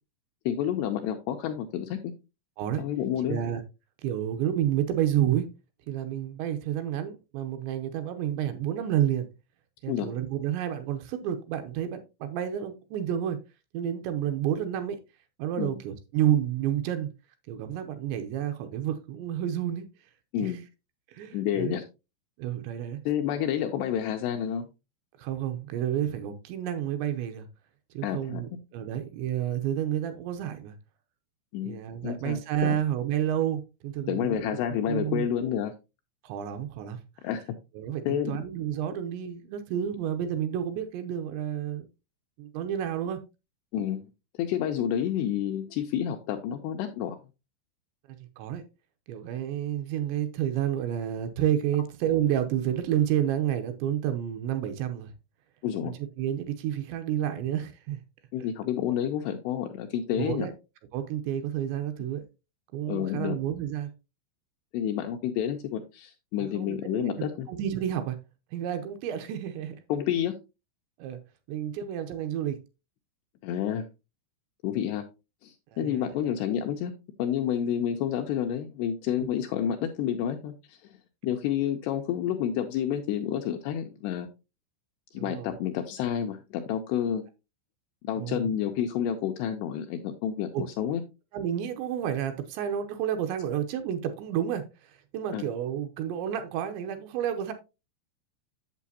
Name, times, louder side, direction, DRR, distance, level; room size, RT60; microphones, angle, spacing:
voice 1, 0.5-2.1 2.8-3.4 9.9-10.1 15.6-15.8 20.3-20.6 21.3-21.8 23.1-24.6 28.0-28.6 31.5-31.8 32.0-32.8 34.1-35.7 37.2-37.4 38.1-38.3 43.7-44.0 44.4-47.2 55.6-55.9 58.3-60.5 62.9-63.4 64.7-67.5 69.9-70.4 73.4-73.9 74.6-75.0 75.4-76.9 77.2-80.8 81.2-84.3 85.1-87.2 88.0-91.0 95.3-95.4, left 9 dB, 85° left, 2.5 m, -29 dB
voice 2, 3.3-3.6 4.0-5.5 5.9-9.3 9.8-13.4 13.7-15.0 15.4-17.1 17.5-19.8 20.4-20.5 21.1-21.7 22.4-23.0 25.2-27.5 27.9-30.7 31.6-34.6 34.9-35.3 36.2-37.0 37.8-41.9 42.4-43.2 48.1-48.6 49.1-55.1 55.8-58.0 60.2-60.5 60.9-62.2 62.7-63.9 66.4-67.1 67.5-68.2 68.5-69.8 71.0-71.2 71.5-72.6 75.8-76.1 85.1-85.5 88.2-88.5 90.5-90.6 91.3-97.5, right 10 dB, 80° right, 2.8 m, -30 dB
8.4 x 7.3 x 2.8 m
omnidirectional pair, 5.4 m